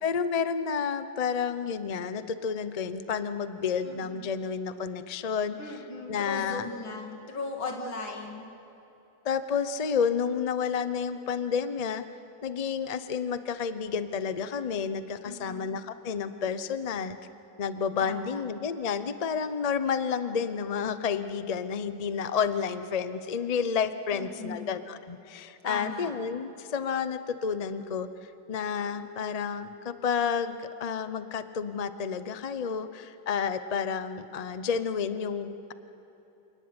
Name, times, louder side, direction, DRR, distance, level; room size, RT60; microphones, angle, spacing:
voice 1, 0.0-5.8 6.1-6.7 9.2-12.0 12.4-17.2 17.6-28.1 28.5-35.7, left 6 dB, 65° left, 11 dB, 0.3 m, -30 dB
voice 2, 3.8-4.2 5.6-8.5 15.2-15.7 18.0-18.4 24.1-24.8 25.6-26.1, left 3 dB, 85° left, 2 dB, 3.3 m, -38 dB
27.0 x 18.5 x 9.7 m, 3.0 s
omnidirectional pair, 2.1 m